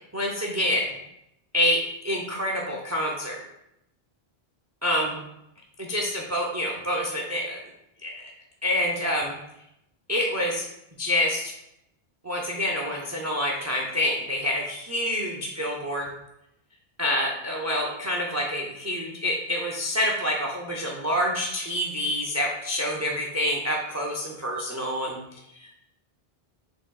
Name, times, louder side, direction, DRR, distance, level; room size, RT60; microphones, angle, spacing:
voice 1, 0.1-0.9 1.5-3.4 4.8-5.2 5.8-7.6 8.0-8.2 8.6-9.3 10.1-10.7 11.0-11.5 12.2-16.1 17.0-25.2 25.5-25.7, left 1 dB, 25° right, -1 dB, 0.4 m, -27 dB
6.0 x 3.8 x 2.3 m, 0.83 s
omnidirectional pair, 1.0 m